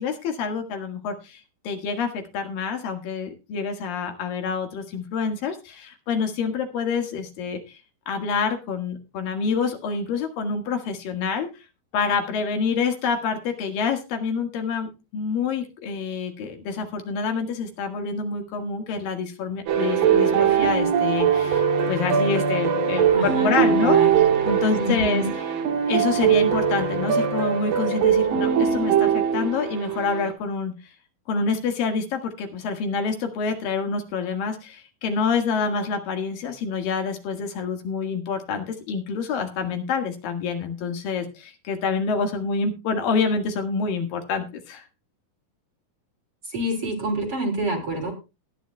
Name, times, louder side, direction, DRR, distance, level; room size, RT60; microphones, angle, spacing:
voice 1, 0.0-7.8 8.1-11.5 11.9-24.0 24.4-25.2 25.9-30.7 31.3-44.9, left 5 dB, 75° left, 5 dB, 3.4 m, -27 dB
sound 1, 19.7-30.3, right 7 dB, 70° right, 3.1 m, -21 dB
voice 2, 23.1-24.2 24.8-25.3 46.4-48.1, right 1 dB, 40° right, 1 dB, 3.9 m, -27 dB
20.0 x 10.0 x 2.2 m, 0.28 s
omnidirectional pair, 4.1 m